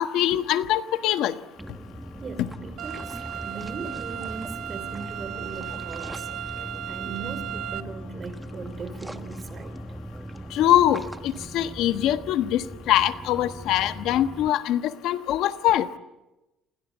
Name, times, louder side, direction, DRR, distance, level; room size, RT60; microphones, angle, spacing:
voice 1, 0.0-1.3 10.5-11.0 11.5-12.6 12.9-15.9, left 12 dB, 70° left, 9 dB, 1.3 m, -22 dB
sound 1, 1.6-14.5, equal, 5° right, 1.1 m, -40 dB
voice 2, 2.2-6.3 6.9-9.8, right 5 dB, 30° right, 13 dB, 3.2 m, -39 dB
sound 2, 2.8-7.8, right 11 dB, 60° right, 1.2 m, -36 dB
29.0 x 22.0 x 8.3 m, 1.0 s
cardioid pair, 145°, 0 cm